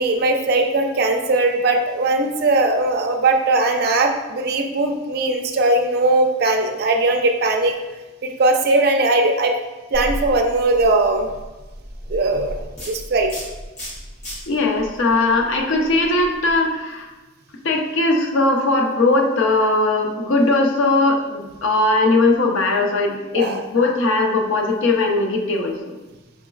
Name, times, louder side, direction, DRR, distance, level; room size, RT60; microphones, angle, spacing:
voice 1, 0.0-7.7 8.2-9.5 9.9-11.3 12.1-12.6 12.9-13.3 23.3-23.6, right 2 dB, 50° right, 4 dB, 0.4 m, -19 dB
sound 1, 9.9-16.6, equal, 35° left, 1.1 m, -34 dB
voice 2, 14.5-17.1 17.6-26.0, left 2 dB, 85° left, 2 dB, 0.5 m, -19 dB
4.9 x 3.0 x 2.3 m, 1.2 s
head